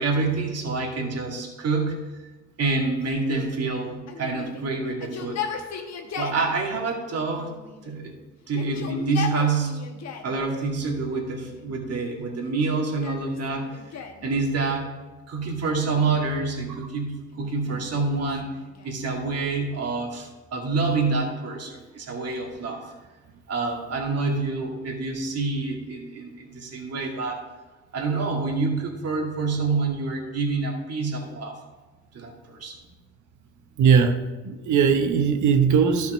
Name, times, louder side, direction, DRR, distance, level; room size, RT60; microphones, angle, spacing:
voice 1, 0.0-2.0 2.6-5.7 6.2-7.5 7.8-8.2 8.5-9.9 10.2-13.7 14.2-15.0 15.3-18.6 18.8-22.9 23.5-27.5 27.9-31.6 32.1-32.8, right 3 dB, 55° right, 0 dB, 2.4 m, -27 dB
Yell, 4.1-6.5 7.3-8.1 8.5-10.4 11.1-11.7 12.4-14.3 15.6-16.5 17.3-19.0, left 6 dB, 60° left, 1.2 m, -37 dB
voice 2, 33.8-34.2 34.4-36.1, right 6 dB, 75° right, 6 dB, 0.9 m, -19 dB
12.0 x 6.0 x 5.1 m, 1.2 s
cardioid pair, 90°, 30 cm